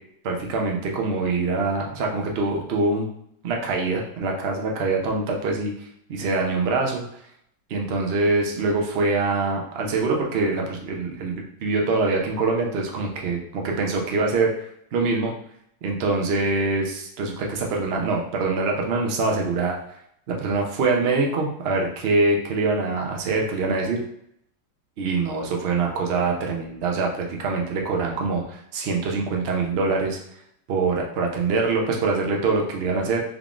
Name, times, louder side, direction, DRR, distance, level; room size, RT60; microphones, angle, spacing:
voice 1, 0.2-3.1 3.4-5.7 6.1-7.0 7.7-14.5 14.9-15.3 15.8-19.8 20.3-24.0 25.0-30.2 30.7-33.2, right 3 dB, 85° right, 0 dB, 0.5 m, -24 dB
3.6 x 3.5 x 2.4 m, 0.72 s
omnidirectional pair, 1.9 m